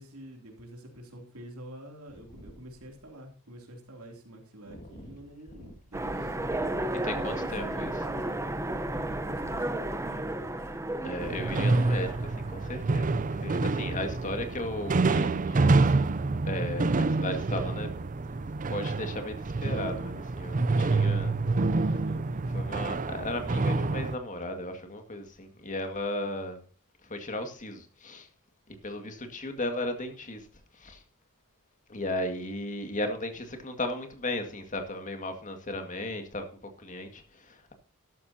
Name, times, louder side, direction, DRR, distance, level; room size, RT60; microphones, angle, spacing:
voice 1, 0.0-6.7 7.3-8.4 8.9-10.7 14.1-14.3 21.8-22.6, right 1 dB, 80° right, 3.0 m, -47 dB
voice 2, 4.7-5.1 7.0-7.9 11.0-16.0 16.5-18.0 18.7-21.4 21.7-22.0 22.5-26.6 27.0-28.3 28.7-30.5 30.7-31.0 31.9-37.7, left 1 dB, 35° left, 2.0 m, -36 dB
Train, 5.9-12.9, right 1 dB, 15° right, 0.9 m, -33 dB
sound 1, 11.2-24.2, right 3 dB, 35° right, 0.5 m, -27 dB
13.0 x 12.5 x 2.8 m
head